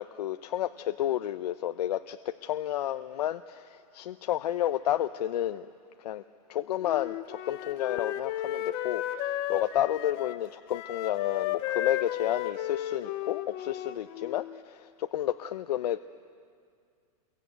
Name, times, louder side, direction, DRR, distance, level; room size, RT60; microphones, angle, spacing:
voice 1, 0.0-5.7 6.0-6.2 6.5-16.0, left 12 dB, 80° left, 9 dB, 0.8 m, -31 dB
Wind instrument woodwind instrument, 6.8-14.6, left 12 dB, 25° left, 0.9 m, -34 dB
28.5 x 22.5 x 9.2 m, 2.2 s
supercardioid pair, 170°, 20 cm